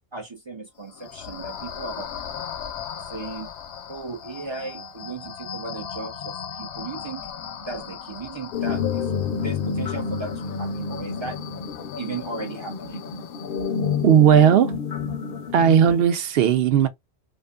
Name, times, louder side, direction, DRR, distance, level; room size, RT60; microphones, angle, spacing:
voice 1, 0.1-2.1 3.0-3.5 3.9-7.2 7.6-9.1 9.4-10.3 10.6-11.4 12.0-13.1, right 3 dB, 40° right, 0.4 m, -36 dB
sound 1, 0.8-14.2, left 7 dB, 85° left, 0.9 m, -39 dB
sound 2, 8.5-16.0, left 6 dB, 65° left, 0.7 m, -29 dB
voice 2, 14.0-14.7 15.5-16.9, right 8 dB, 65° right, 0.7 m, -16 dB
2.5 x 2.4 x 2.2 m
omnidirectional pair, 1.1 m